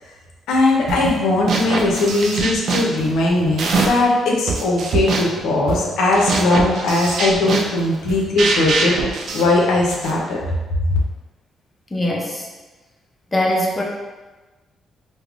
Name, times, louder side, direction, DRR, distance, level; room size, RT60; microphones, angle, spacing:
voice 1, 0.5-10.4 10.9-11.0, left 2 dB, 85° left, -2 dB, 0.5 m, -19 dB
sound 1, 0.9-1.2 1.5-4.1 4.5-10.2, right 3 dB, 65° right, 0.3 m, -23 dB
voice 2, 11.9-12.4 13.3-13.8, left 1 dB, 20° left, -1 dB, 0.5 m, -21 dB
3.3 x 2.0 x 2.4 m, 1.2 s
cardioid pair, 90°, 0 cm